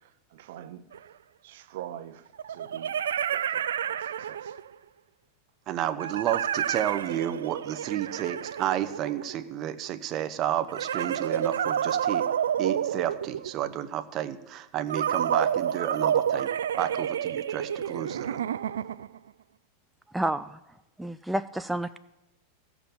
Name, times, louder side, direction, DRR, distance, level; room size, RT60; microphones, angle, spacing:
voice 1, 0.3-0.8 1.4-2.2 2.5-2.9 3.3-4.5, right 12 dB, 70° right, 0.9 m, -43 dB
sound 1, 0.9-1.0 2.4-4.8 6.0-9.5 10.7-13.7 14.9-19.2, right 9 dB, 90° right, 0.4 m, -29 dB
voice 2, 5.7-12.2 12.6-16.5 16.8-18.4, right 11 dB, 40° right, 0.9 m, -31 dB
voice 3, 20.1-20.6 21.0-22.0, right 1 dB, 5° right, 0.4 m, -30 dB
15.5 x 6.1 x 7.0 m
hypercardioid pair, 120°, 0 cm